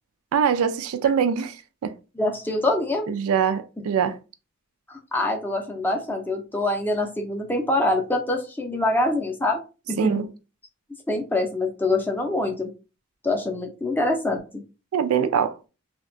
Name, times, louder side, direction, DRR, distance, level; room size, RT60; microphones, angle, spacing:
voice 1, 0.3-1.6 1.8-1.9 3.1-4.2 10.0-10.3 14.9-15.6, right 7 dB, 80° right, 0.3 m, -23 dB
voice 2, 2.2-3.1 4.9-9.6 9.9-10.2 11.1-12.7 13.2-14.4, left 2 dB, 10° left, 0.4 m, -25 dB
2.7 x 2.2 x 2.5 m
head